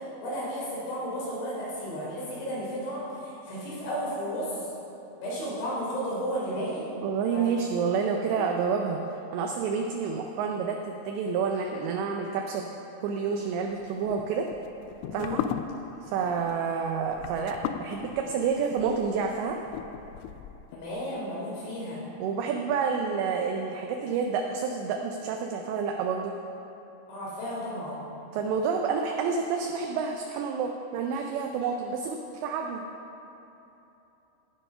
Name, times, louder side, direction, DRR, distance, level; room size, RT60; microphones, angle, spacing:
voice 1, 0.2-4.7 5.2-6.9 7.3-7.5 8.4-8.5 15.1-15.4 20.7-22.1 27.1-28.1, equal, 60° left, -7 dB, 5.7 m, -33 dB
voice 2, 7.0-12.6 13.0-14.5 15.1-15.4 16.0-19.6 22.2-26.3 28.3-32.8, right 5 dB, 80° right, 3 dB, 2.7 m, -29 dB
sound 1, 13.8-20.8, left 9 dB, 85° left, 2.8 m, -37 dB
16.5 x 7.9 x 5.5 m, 3.0 s
omnidirectional pair, 5.6 m